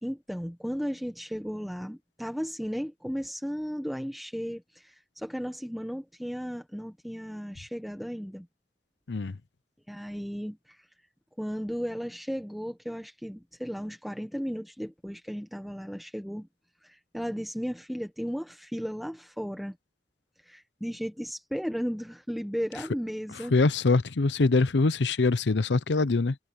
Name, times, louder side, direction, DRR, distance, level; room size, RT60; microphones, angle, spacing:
voice 1, 0.0-8.5 9.9-10.9 11.4-16.5 16.8-19.8 20.4-23.5, equal, ahead, 1.3 m, -35 dB
voice 2, 23.5-26.4, left 3 dB, 80° left, 0.7 m, -23 dB
head